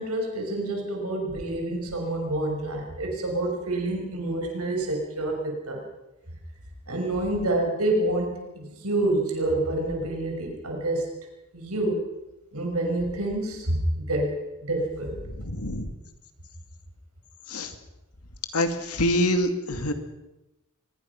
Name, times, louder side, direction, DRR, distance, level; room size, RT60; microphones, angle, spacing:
voice 1, 0.0-5.8 6.9-11.1 11.5-12.0 12.5-15.2, right 1 dB, 85° right, 2 dB, 6.0 m, -28 dB
voice 2, 15.2-15.9 17.5-17.7 18.5-19.9, left 1 dB, 85° left, 7 dB, 2.4 m, -26 dB
23.5 x 21.0 x 6.0 m, 1.0 s
head